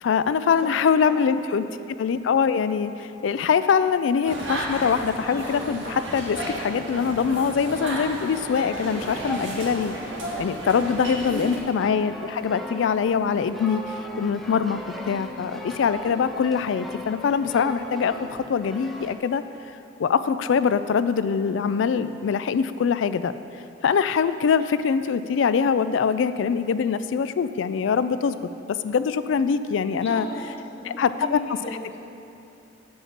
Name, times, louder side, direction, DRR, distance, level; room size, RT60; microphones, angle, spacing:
voice 1, 0.0-9.9 10.4-13.8 14.2-14.8 15.1-19.4 20.0-23.3 23.8-28.4 28.8-30.3 30.9-31.4, left 6 dB, 75° left, 13 dB, 0.3 m, -23 dB
sound 1, 4.2-11.6, right 1 dB, 80° right, 1.7 m, -33 dB
sound 2, 11.8-19.2, equal, ahead, 0.5 m, -38 dB
voice 2, 29.9-31.0 31.3-31.8, left 1 dB, 35° left, -4 dB, 1.1 m, -36 dB
8.7 x 5.4 x 5.9 m, 2.7 s
head